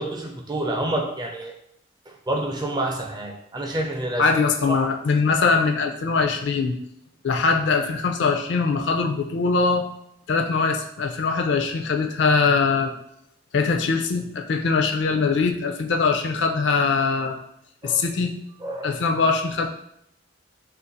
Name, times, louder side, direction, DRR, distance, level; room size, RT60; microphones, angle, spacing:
voice 1, 0.0-1.5 2.3-4.3 4.7-4.9 17.8-18.0 18.6-19.0, right 1 dB, 20° right, 1 dB, 0.4 m, -28 dB
voice 2, 4.2-6.8 7.2-9.9 10.3-12.9 13.5-17.4 17.8-18.4 18.8-19.7, left 4 dB, 60° left, 3 dB, 0.4 m, -22 dB
2.5 x 2.4 x 3.9 m, 0.73 s
head